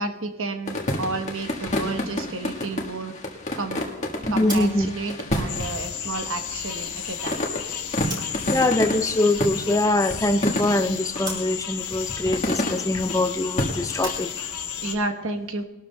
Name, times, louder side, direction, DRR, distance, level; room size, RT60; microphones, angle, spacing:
voice 1, 0.0-3.1 3.6-3.9 4.3-7.5 14.8-15.6, right 2 dB, 60° right, 6 dB, 1.1 m, -31 dB
sound 1, 0.7-11.2 11.9-13.2 13.6-14.1, left 1 dB, 30° left, 1.6 m, -30 dB
voice 2, 4.4-4.9 8.5-14.3, left 2 dB, 15° left, 8 dB, 0.5 m, -23 dB
sound 2, 4.5-8.5 8.8-9.9 10.2-14.2, right 1 dB, 20° right, 2.9 m, -40 dB
sound 3, 5.5-15.0, left 9 dB, 65° left, 1.2 m, -33 dB
21.0 x 12.5 x 2.3 m, 1.0 s
head